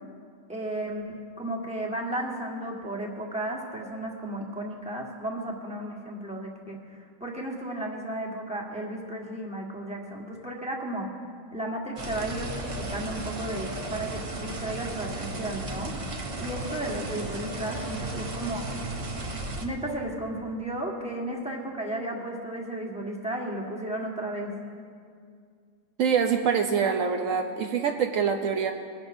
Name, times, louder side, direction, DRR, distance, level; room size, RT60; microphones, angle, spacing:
voice 1, 0.5-11.1 11.5-16.1 16.4-18.7 19.6-24.5, right 1 dB, 5° right, -3 dB, 1.4 m, -34 dB
sound 1, 12.0-19.7, right 2 dB, 30° right, 0.7 m, -35 dB
sound 2, 12.5-13.0 13.5-14.0 16.5-17.0 17.5-18.0, left 5 dB, 30° left, 1.3 m, -42 dB
voice 2, 26.0-28.7, right 6 dB, 70° right, 4 dB, 1.0 m, -25 dB
21.0 x 11.0 x 2.7 m, 2.2 s
omnidirectional pair, 1.5 m